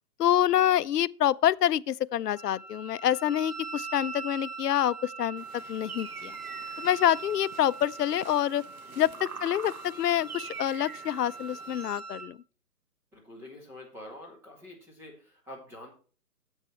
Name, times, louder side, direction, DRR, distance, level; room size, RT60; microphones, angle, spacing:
voice 1, 0.2-6.4 6.8-8.6 9.0-12.4, left 11 dB, 85° left, 0.6 m, -27 dB
Wind instrument woodwind instrument, 2.4-12.3, right 4 dB, 85° right, 4.5 m, -42 dB
sound 1, 5.4-12.0, right 7 dB, 65° right, 1.0 m, -45 dB
voice 2, 8.8-9.3 13.1-16.0, left 1 dB, 5° right, 2.0 m, -47 dB
9.0 x 8.1 x 4.4 m
hypercardioid pair, 170°, 46 cm